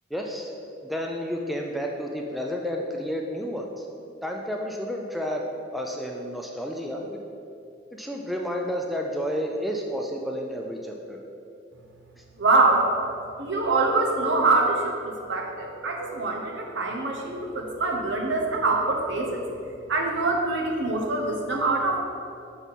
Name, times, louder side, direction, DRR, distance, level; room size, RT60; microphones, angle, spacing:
voice 1, 0.1-0.5 0.8-3.9 4.2-5.4 5.7-7.2 7.9-11.2 12.2-12.3, equal, ahead, 0 dB, 0.3 m, -31 dB
voice 2, 12.4-12.9 13.4-14.9 15.3-19.4 19.9-22.0, right 3 dB, 65° right, 1 dB, 0.9 m, -24 dB
6.0 x 5.3 x 4.1 m, 2.6 s
head